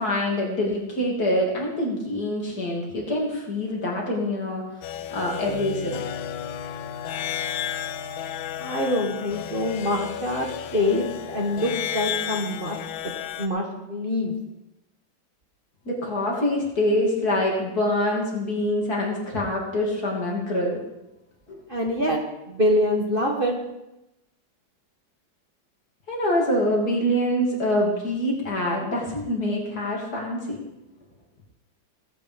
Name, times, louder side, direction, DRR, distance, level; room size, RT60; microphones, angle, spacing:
voice 1, 0.0-4.6 5.1-5.9 15.8-20.8 21.5-21.6 26.1-30.6, left 1 dB, 50° left, -2 dB, 3.3 m, -25 dB
sound 1, 4.8-13.5, left 10 dB, 85° left, 1.5 m, -33 dB
Bass guitar, 5.5-11.7, left 4 dB, 80° right, 2.9 m, -42 dB
voice 2, 8.6-12.8 13.0-14.3 21.7-22.2 22.5-23.5, left 1 dB, 30° right, -1 dB, 1.6 m, -25 dB
17.5 x 8.9 x 5.2 m, 0.93 s
omnidirectional pair, 2.1 m